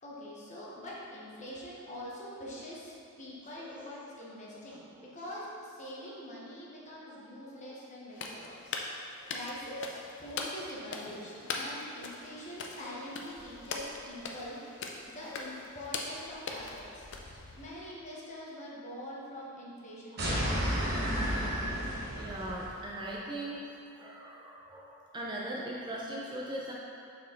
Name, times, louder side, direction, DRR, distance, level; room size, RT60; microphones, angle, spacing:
voice 1, 0.0-8.7 9.3-14.6 15.1-17.1 17.6-20.7, left 1 dB, 35° left, -6 dB, 1.1 m, -44 dB
voice 2, 3.6-3.9 4.5-4.6 6.0-6.2 7.4-7.8 9.2-9.4 13.6-13.7 15.2-15.4 20.1-20.6 21.6-21.8 22.1-26.7, right 1 dB, 20° right, -4 dB, 0.5 m, -41 dB
sound 1, 8.1-17.9, left 3 dB, 55° left, 0.5 m, -41 dB
sound 2, 20.2-22.7, equal, 45° right, 1.2 m, -31 dB
6.0 x 4.4 x 3.8 m, 2.6 s
head